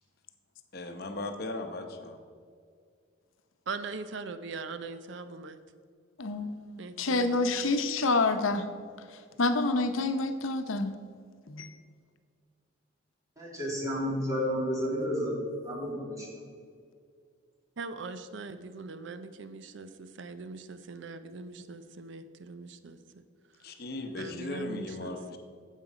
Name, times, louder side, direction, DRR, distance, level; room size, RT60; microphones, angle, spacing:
voice 1, 0.7-2.2 23.6-25.4, left 2 dB, 50° left, 5 dB, 0.9 m, -37 dB
voice 2, 3.7-5.6 6.8-7.4 17.8-23.0 24.2-25.4, right 4 dB, 65° right, 11 dB, 0.5 m, -41 dB
voice 3, 6.2-8.7 9.4-10.9 11.5-11.7, left 3 dB, 90° left, 8 dB, 0.8 m, -28 dB
voice 4, 13.4-15.4 15.6-16.3, equal, 15° right, -4 dB, 2.6 m, -31 dB
9.5 x 7.4 x 5.0 m, 2.1 s
head